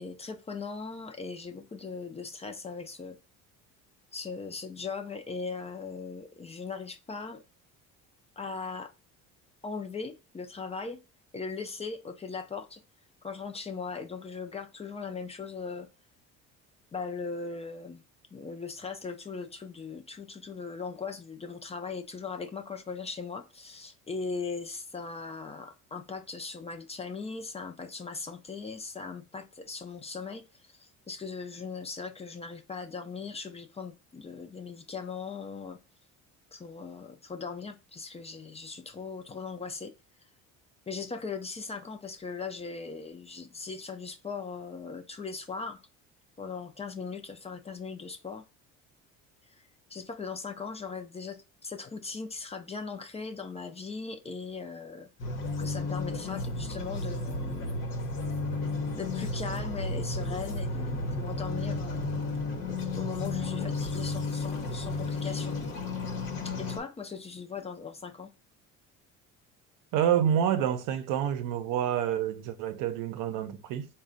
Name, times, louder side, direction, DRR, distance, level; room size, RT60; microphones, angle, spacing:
voice 1, 0.0-3.2 4.1-7.4 8.4-8.9 9.6-11.0 11.3-12.8 13.2-15.9 16.9-18.0 18.3-30.4 30.7-35.8 36.5-39.9 40.9-45.8 46.4-48.4 49.9-55.1 55.6-57.8 59.0-62.4 62.7-65.6 66.6-68.3, left 4 dB, 20° left, 0.4 m, -39 dB
sound 1, 55.2-66.8, left 3 dB, 85° left, 0.9 m, -33 dB
voice 2, 69.9-73.9, right 9 dB, 70° right, 0.7 m, -28 dB
4.1 x 2.2 x 3.7 m
supercardioid pair, 95°, 33 cm